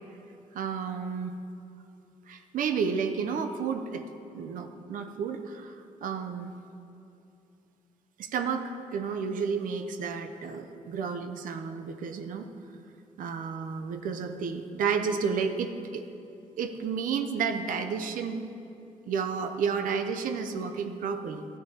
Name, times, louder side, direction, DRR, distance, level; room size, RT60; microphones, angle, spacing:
voice 1, 0.5-1.3 2.3-4.0 4.3-5.7 6.0-6.5 8.2-12.5 13.2-16.0 16.6-18.4 19.1-21.5, right 6 dB, 85° right, 6 dB, 0.6 m, -31 dB
13.5 x 10.0 x 2.9 m, 2.8 s
cardioid pair, 120°, 14 cm